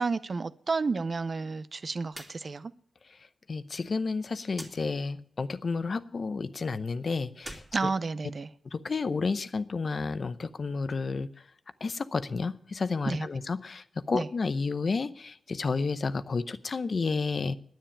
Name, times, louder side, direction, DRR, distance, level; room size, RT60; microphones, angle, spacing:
voice 1, 0.0-2.7 7.7-8.5 13.1-13.3 14.1-14.3, right 4 dB, 50° right, 0.6 m, -31 dB
sound 1, 2.1-2.4 2.7-2.8 4.5-4.8 7.3-8.6, equal, 5° right, 2.5 m, -45 dB
voice 2, 3.5-7.9 8.6-11.3 11.8-17.6, left 4 dB, 55° left, 0.7 m, -31 dB
10.5 x 9.1 x 8.6 m
wide cardioid pair, 90°, 0 cm